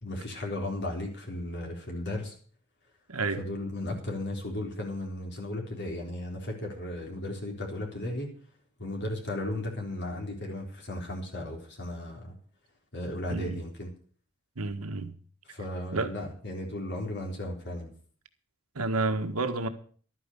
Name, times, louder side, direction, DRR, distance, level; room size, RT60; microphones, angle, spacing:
voice 1, 0.0-2.3 3.4-8.3 8.8-12.4 12.9-13.9 15.4-17.9, left 1 dB, 55° left, 3.8 m, -35 dB
voice 2, 3.1-3.4 13.3-13.6 14.6-15.1 15.9-16.1 18.7-19.7, right 3 dB, 85° right, 1.7 m, -30 dB
12.5 x 9.6 x 6.8 m
head